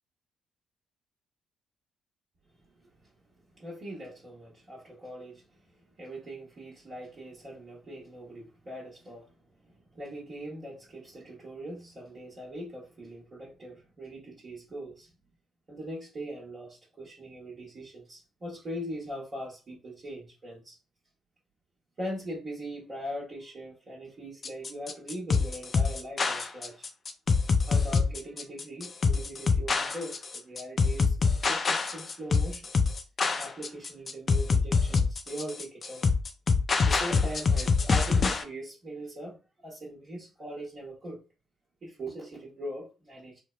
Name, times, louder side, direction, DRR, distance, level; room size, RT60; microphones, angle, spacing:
voice 1, 3.6-5.7 6.0-9.3 9.7-15.1 15.7-20.8 22.0-26.8 27.7-31.2 31.4-32.7 33.4-36.1 36.8-39.4 39.6-41.2 41.8-43.4, right 1 dB, 45° right, 1.0 m, -41 dB
sound 1, 24.4-38.4, left 4 dB, 45° left, 0.4 m, -25 dB
3.2 x 2.1 x 2.3 m
hypercardioid pair, 45°, 0 cm